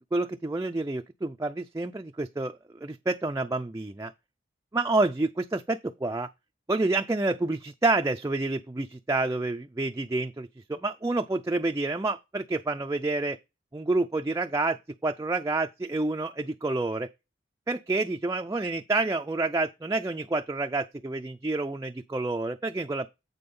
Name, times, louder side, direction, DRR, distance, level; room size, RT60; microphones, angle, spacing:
voice 1, 0.1-4.1 4.7-6.3 6.7-13.4 13.7-17.1 17.7-23.1, right 2 dB, 15° right, 0.4 m, -28 dB
8.6 x 4.1 x 5.3 m
head